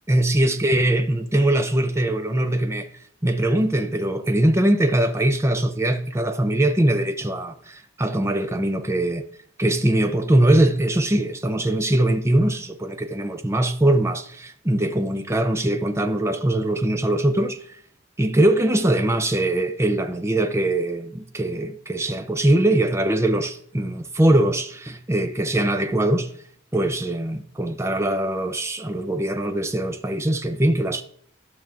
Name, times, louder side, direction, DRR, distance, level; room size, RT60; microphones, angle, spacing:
voice 1, 0.1-2.9 3.2-9.2 9.6-17.6 18.2-26.3 26.7-31.0, right 1 dB, 15° right, 0.5 m, -21 dB
11.5 x 6.2 x 3.6 m
head